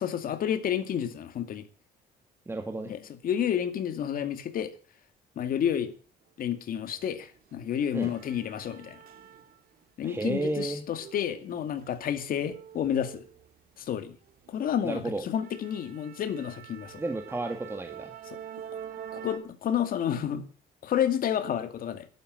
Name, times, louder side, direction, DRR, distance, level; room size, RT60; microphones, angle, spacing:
voice 1, 0.0-1.6 2.9-4.7 5.4-5.9 6.4-9.0 10.0-13.2 13.8-14.1 14.5-17.0 18.3-18.4 19.1-20.5 20.8-22.1, left 9 dB, 55° left, 2.3 m, -30 dB
voice 2, 2.5-2.9 7.9-8.1 10.0-10.8 14.8-15.2 17.0-18.1, right 2 dB, 15° right, 1.8 m, -32 dB
sound 1, 6.9-7.0 7.4-9.8 10.1-13.9 14.3-14.6 14.9-15.0 15.4-19.4, right 9 dB, 60° right, 2.4 m, -46 dB
12.0 x 11.0 x 7.6 m
cardioid pair, 110°, 17 cm